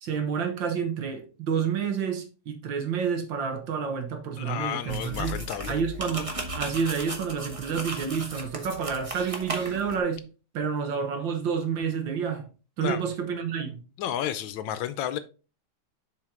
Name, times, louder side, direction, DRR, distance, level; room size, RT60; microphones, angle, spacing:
voice 1, 0.0-5.4 5.7-10.2 10.5-12.5 12.8-13.8, right 6 dB, 65° right, 1.7 m, -29 dB
voice 2, 4.4-5.7 12.8-13.0 14.0-15.2, left 10 dB, 75° left, 1.3 m, -31 dB
sound 1, 4.9-10.0, right 2 dB, 25° right, 0.7 m, -36 dB
7.4 x 4.6 x 3.6 m
omnidirectional pair, 2.3 m